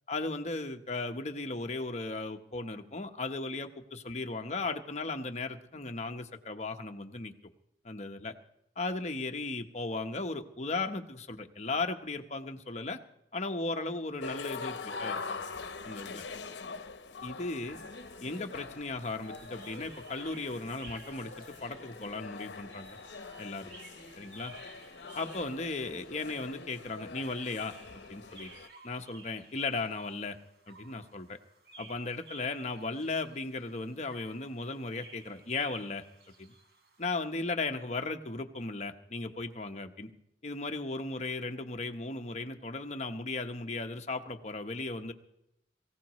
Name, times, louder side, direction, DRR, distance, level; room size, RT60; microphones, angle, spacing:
voice 1, 0.1-7.3 7.8-8.3 8.8-13.0 13.3-15.4 15.8-16.2 17.2-17.8 18.2-23.0 23.4-23.7 24.2-24.5 25.1-28.5 28.8-30.4 30.7-31.4 31.8-36.0 36.4-36.5 37.0-40.1 40.4-45.1, left 3 dB, 40° left, 6 dB, 1.1 m, -36 dB
sound 1, 14.2-28.7, left 4 dB, 80° left, 0.9 m, -43 dB
sound 2, 17.6-37.2, right 3 dB, 75° right, 3.4 m, -55 dB
23.0 x 16.0 x 3.1 m, 0.81 s
head